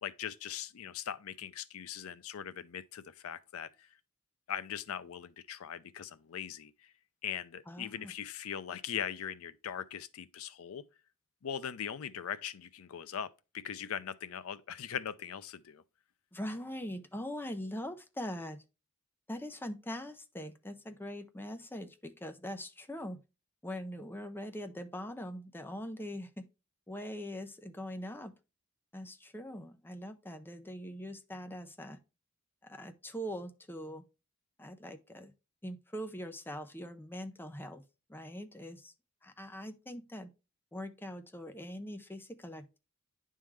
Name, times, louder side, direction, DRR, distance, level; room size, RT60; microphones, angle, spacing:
voice 1, 0.0-3.9 4.5-6.9 7.2-10.9 11.4-15.8, left 8 dB, 70° left, 0.5 m, -40 dB
voice 2, 7.7-8.1 16.3-18.6 19.3-23.2 23.6-26.5 26.9-28.3 28.9-32.0 32.6-34.0 34.6-35.3 35.6-37.8 38.1-38.9 39.2-40.3 40.7-42.8, equal, 10° left, 0.6 m, -42 dB
10.0 x 3.7 x 3.1 m
head